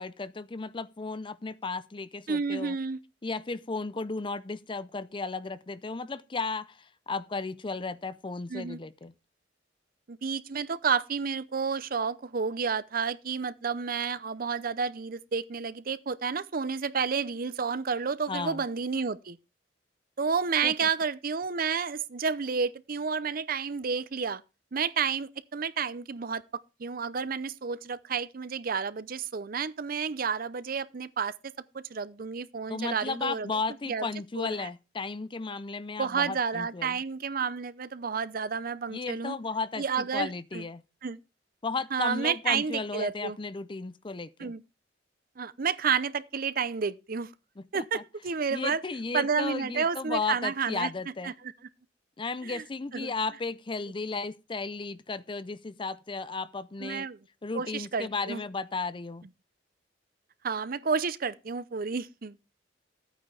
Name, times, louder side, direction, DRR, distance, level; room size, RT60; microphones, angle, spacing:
voice 1, 0.0-2.8 3.2-9.1 18.3-18.6 20.6-20.9 32.7-37.0 38.9-40.8 41.6-44.5 47.7-48.0 48.5-51.3 52.2-57.1 57.4-59.2, left 4 dB, 25° left, 0.5 m, -34 dB
voice 2, 2.3-3.0 8.5-8.8 10.1-19.4 20.2-24.4 24.7-26.4 26.8-33.5 33.9-34.1 34.4-34.7 36.0-39.4 39.8-40.6 41.0-41.2 41.9-43.4 44.4-44.6 45.4-47.3 47.7-48.8 49.1-50.9 51.2-51.3 52.4-52.6 52.9-53.1 56.8-57.2 57.5-58.4 60.4-62.4, right 6 dB, 50° right, 0.6 m, -30 dB
13.5 x 9.0 x 3.3 m
head